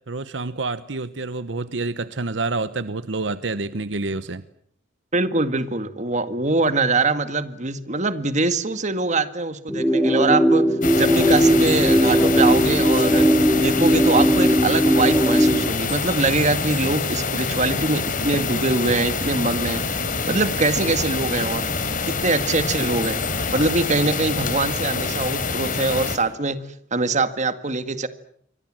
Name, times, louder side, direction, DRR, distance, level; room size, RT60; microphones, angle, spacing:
voice 1, 0.1-4.4, right 3 dB, 75° right, 14 dB, 1.0 m, -28 dB
voice 2, 5.1-10.7 10.9-19.8 20.3-21.7 22.0-23.2 23.5-26.6 26.9-28.1, right 3 dB, 40° right, 11 dB, 1.9 m, -23 dB
sound 1, 9.7-15.7, equal, ahead, 2.8 m, -18 dB
sound 2, 10.8-26.2, left 4 dB, 45° left, 3.6 m, -26 dB
28.0 x 24.0 x 7.6 m, 0.68 s
head